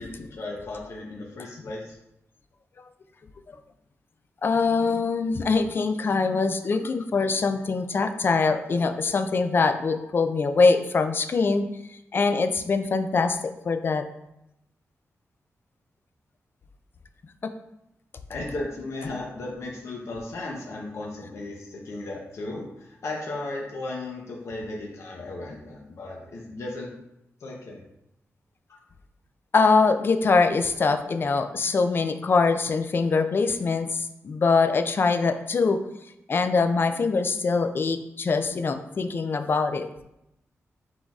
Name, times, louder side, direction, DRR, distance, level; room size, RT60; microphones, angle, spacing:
voice 1, 0.0-2.0 18.3-26.9 27.4-27.8, left 2 dB, 65° left, -2 dB, 0.7 m, -35 dB
voice 2, 4.4-14.0 17.4-17.5 29.5-35.8 36.3-39.9, left 4 dB, 45° left, 8 dB, 0.4 m, -23 dB
5.9 x 3.8 x 2.4 m, 0.85 s
wide cardioid pair, 145°, 5 cm